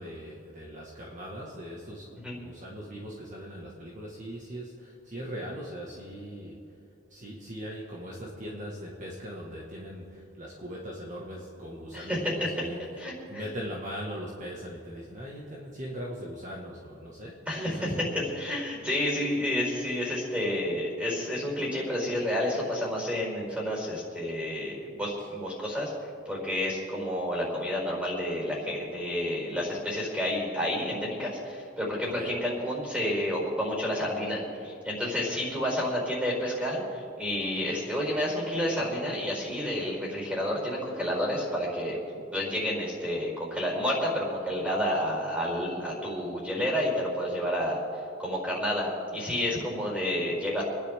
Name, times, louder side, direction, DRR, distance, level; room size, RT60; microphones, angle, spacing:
voice 1, 0.0-6.8 7.1-13.0 13.3-18.0 25.2-25.3 32.0-32.3 35.4-35.5, equal, 40° right, -3 dB, 1.7 m, -40 dB
voice 2, 11.9-12.3 13.0-13.4 17.5-25.9 26.2-42.0 42.3-47.8 48.2-50.6, left 1 dB, 5° right, -4 dB, 4.7 m, -30 dB
29.0 x 10.5 x 3.7 m, 2.5 s
head